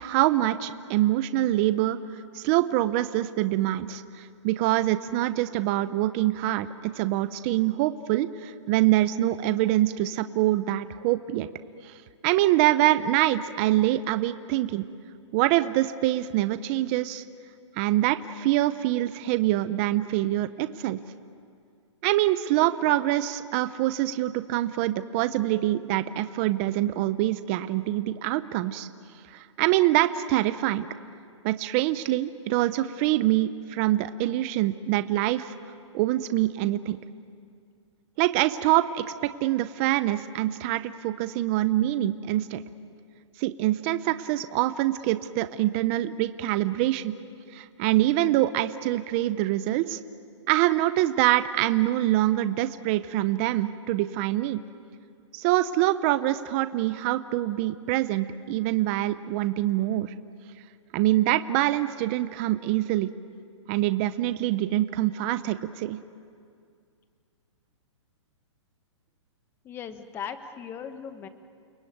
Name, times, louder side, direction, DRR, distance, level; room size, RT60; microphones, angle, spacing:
voice 1, 0.0-2.0 2.3-11.5 11.8-11.9 12.2-14.8 15.3-17.2 17.8-21.0 22.0-28.9 29.3-30.9 31.4-35.5 35.9-37.0 38.2-39.0 39.4-42.6 43.4-47.1 47.5-50.0 50.5-54.6 55.3-60.1 60.9-63.1 63.7-66.0, right 15 dB, 25° right, 12 dB, 0.6 m, -25 dB
voice 2, 69.6-71.3, left 7 dB, 15° left, 10 dB, 1.2 m, -38 dB
29.5 x 20.0 x 9.3 m, 2.3 s
hypercardioid pair, 160°, 16 cm